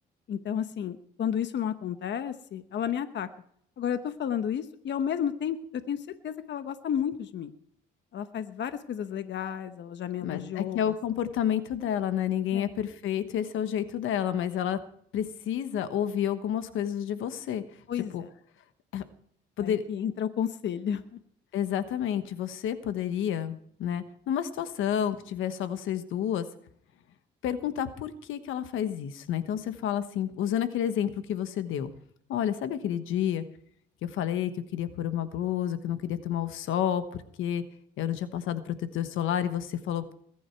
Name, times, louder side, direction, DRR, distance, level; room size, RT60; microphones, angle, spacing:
voice 1, 0.3-3.3 3.8-7.5 8.1-10.9 12.5-12.7 17.9-18.3 19.6-21.2, left 9 dB, 65° left, 10 dB, 1.1 m, -32 dB
voice 2, 10.2-14.8 15.1-17.6 18.1-18.2 18.9-19.0 19.6-19.8 21.5-26.5 27.4-31.9 32.3-33.4 34.0-37.6 38.0-40.1, left 10 dB, 85° left, 11 dB, 1.2 m, -30 dB
21.0 x 10.0 x 4.6 m, 0.65 s
cardioid pair, 90°, 20 cm